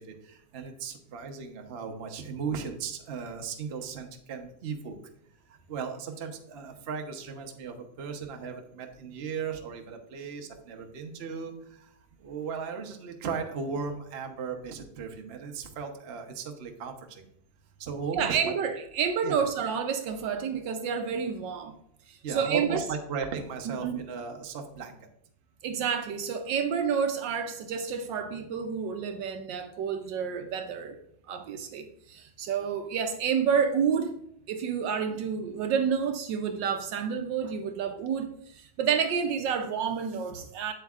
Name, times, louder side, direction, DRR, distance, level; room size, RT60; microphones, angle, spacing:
voice 1, 0.0-5.0 5.5-11.9 12.2-17.3 17.8-18.5 19.2-19.4 22.2-25.0, right 5 dB, 50° right, 0.7 m, -36 dB
voice 2, 18.1-21.7 22.1-22.8 23.7-24.0 25.6-31.0 31.3-34.2 34.5-40.7, right 7 dB, 70° right, 1.2 m, -29 dB
8.0 x 7.9 x 2.4 m
omnidirectional pair, 2.2 m